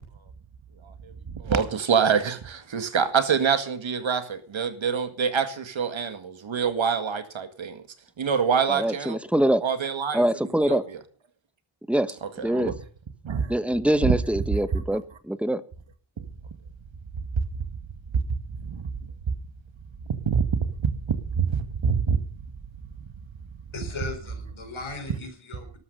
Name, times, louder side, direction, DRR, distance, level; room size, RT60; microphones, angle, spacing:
voice 1, 1.0-7.8 8.2-9.2 9.6-10.3 10.7-10.8 12.4-12.7 13.2-13.5 14.0-14.1 18.6-18.9 20.2-20.4 20.8-22.2, right 6 dB, 70° right, 2.0 m, -25 dB
voice 2, 8.7-9.6 10.1-10.8 11.9-12.7 13.5-15.6, right 1 dB, ahead, 1.1 m, -24 dB
voice 3, 23.7-25.8, left 3 dB, 70° left, 4.0 m, -37 dB
13.0 x 12.5 x 5.4 m
cardioid pair, 70°, 49 cm